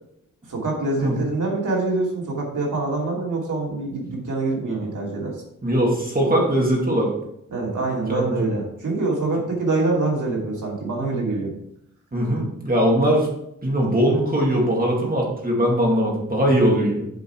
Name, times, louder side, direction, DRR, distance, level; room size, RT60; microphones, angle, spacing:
voice 1, 0.5-5.4 7.5-11.5, right 2 dB, 70° right, -3 dB, 2.7 m, -25 dB
voice 2, 5.6-7.1 8.2-8.4 12.1-13.3 13.6-17.0, equal, 25° right, -2 dB, 2.2 m, -20 dB
8.1 x 5.3 x 4.7 m, 0.78 s
wide cardioid pair, 110°, 32 cm